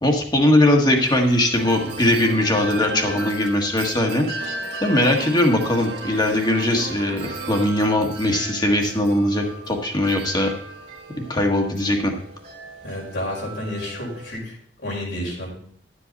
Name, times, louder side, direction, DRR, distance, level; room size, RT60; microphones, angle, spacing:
voice 1, 0.0-4.5 4.8-10.5 11.3-12.1, left 1 dB, 25° left, 2 dB, 1.5 m, -20 dB
Wind chime, 1.0-14.4, right 2 dB, 40° right, 2.1 m, -38 dB
sound 1, 1.6-11.0, right 3 dB, 70° right, 0.9 m, -37 dB
voice 2, 12.8-14.5 14.8-15.5, left 1 dB, 80° left, -4 dB, 5.0 m, -30 dB
11.5 x 7.8 x 4.1 m, 0.62 s
head